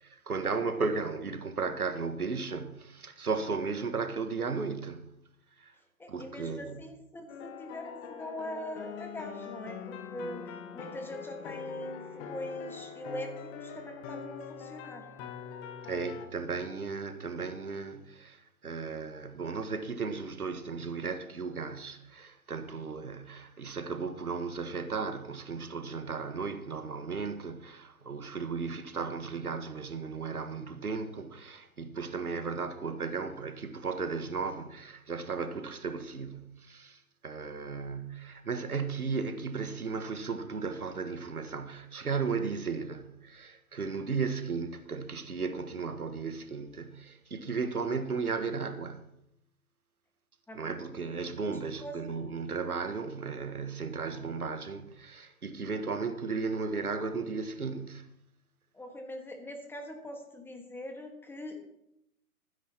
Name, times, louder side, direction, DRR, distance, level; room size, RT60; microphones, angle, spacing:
voice 1, 0.0-5.0 5.6-5.7 6.1-6.9 15.8-49.0 50.5-58.1, right 4 dB, 85° right, 1.6 m, -35 dB
voice 2, 6.0-10.4 10.7-15.0 50.5-50.6 51.8-51.9 58.7-61.6, left 1 dB, 5° left, 1.6 m, -42 dB
sound 1, 7.3-16.3, left 7 dB, 25° left, 1.2 m, -43 dB
24.5 x 10.0 x 3.0 m
figure-of-eight pair, 125°, 43 cm